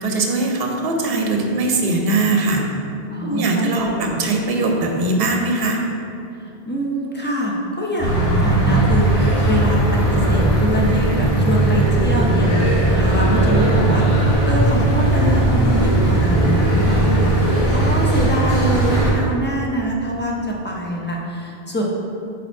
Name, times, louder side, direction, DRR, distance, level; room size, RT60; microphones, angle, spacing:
voice 1, 0.0-2.6 3.2-5.8, right 2 dB, 70° right, 1 dB, 0.9 m, -20 dB
voice 2, 3.1-4.2 6.4-21.8, equal, 15° left, -2 dB, 0.6 m, -24 dB
sound 1, 8.0-19.1, right 1 dB, 30° left, 1.7 m, -17 dB
4.9 x 4.2 x 4.5 m, 2.5 s
omnidirectional pair, 1.0 m